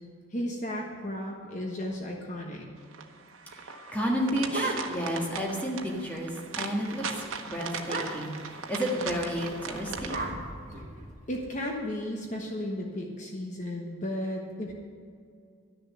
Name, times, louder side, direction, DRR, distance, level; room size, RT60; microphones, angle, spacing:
voice 1, 0.3-2.7 10.7-10.8 11.3-14.7, left 1 dB, 35° left, 0 dB, 1.2 m, -34 dB
sound 1, 2.9-10.3, right 5 dB, 85° right, 1.1 m, -39 dB
voice 2, 3.5-6.3 6.6-10.2, equal, 10° left, -2 dB, 1.6 m, -31 dB
sound 2, 3.9-5.2 5.6-5.7 5.9-6.3 6.6-6.8 7.1-7.2 7.8-8.4 9.3-11.4, right 2 dB, 35° right, 2.0 m, -36 dB
12.5 x 6.8 x 9.7 m, 2.3 s
head